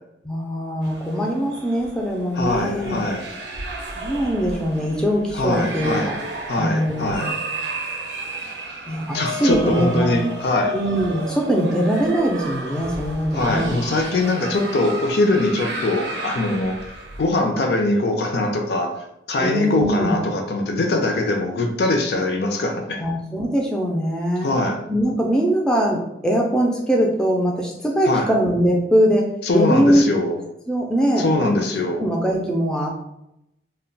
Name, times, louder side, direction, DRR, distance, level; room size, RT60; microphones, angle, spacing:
voice 1, 0.2-3.0 3.9-6.2 6.6-7.3 8.9-10.2 10.7-13.8 19.4-20.2 23.0-24.5 24.9-30.1 30.7-31.6 32.0-32.9, equal, 5° left, -1 dB, 0.3 m, -21 dB
sound 1, 0.8-17.3, right 2 dB, 75° right, 0.5 m, -32 dB
voice 2, 2.3-3.2 5.3-6.1 6.5-7.3 9.1-10.8 13.3-16.8 17.2-19.0 19.3-23.0 24.4-24.8 28.1-28.3 29.5-30.4 31.2-32.0, left 2 dB, 65° left, 3 dB, 0.4 m, -22 dB
2.2 x 2.1 x 3.8 m, 0.83 s
head